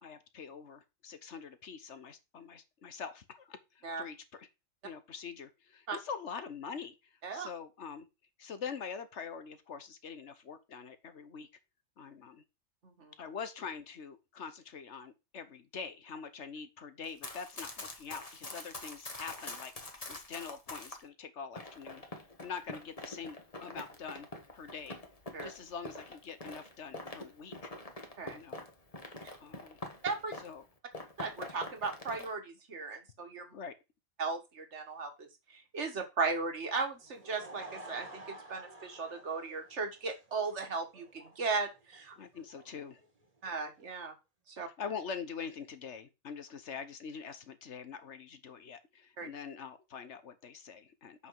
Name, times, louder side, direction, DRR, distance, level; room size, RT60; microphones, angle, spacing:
voice 1, 0.0-4.5 4.8-8.1 8.4-11.5 12.0-12.4 13.2-19.7 20.1-25.0 25.4-27.7 28.2-28.6 29.4-29.8 30.4-30.6 33.5-33.7 42.2-43.0 44.8-51.3, left 6 dB, 60° left, 11 dB, 1.4 m, -44 dB
Run, 17.0-21.0 21.6-30.6 30.9-32.3, left 2 dB, 25° left, 1.6 m, -45 dB
voice 2, 30.0-30.3 31.2-33.5 34.2-42.2 43.4-44.1 44.5-44.7 49.2-49.3, right 4 dB, 55° right, 6 dB, 1.9 m, -37 dB
Laughter / Crowd, 36.9-43.9, right 2 dB, 25° right, 1.8 m, -52 dB
8.0 x 5.9 x 4.7 m, 0.25 s
omnidirectional pair, 1.4 m